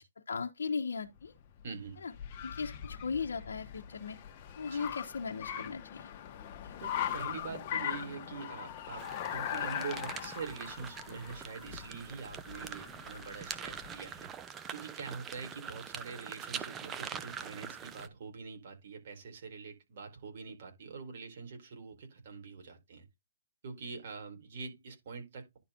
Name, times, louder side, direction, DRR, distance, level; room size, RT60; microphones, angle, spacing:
voice 1, 0.3-1.3 2.0-2.1 2.4-4.2 4.6-6.1 6.6-6.7, left 5 dB, 80° left, 1.0 m, -37 dB
Car, 1.2-14.1, left 10 dB, 35° left, 1.3 m, -41 dB
voice 2, 1.6-2.0 4.6-4.9 6.8-14.3 14.7-23.0 23.6-25.6, right 5 dB, 50° right, 4.2 m, -44 dB
sound 1, 9.0-18.1, right 7 dB, 15° right, 0.6 m, -44 dB
10.5 x 4.2 x 3.8 m
hypercardioid pair, 155°, 0 cm